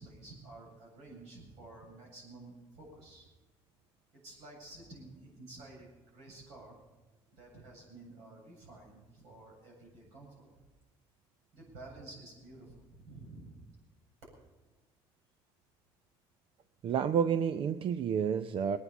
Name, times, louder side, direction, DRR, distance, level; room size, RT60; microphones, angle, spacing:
voice 1, 0.0-3.3 4.1-6.8 7.3-10.6 11.5-13.7, right 2 dB, 80° right, -1 dB, 7.9 m, -51 dB
voice 2, 16.8-18.8, right 7 dB, 50° right, 11 dB, 0.6 m, -30 dB
20.5 x 9.7 x 7.1 m, 1.1 s
cardioid pair, 105°, 11 cm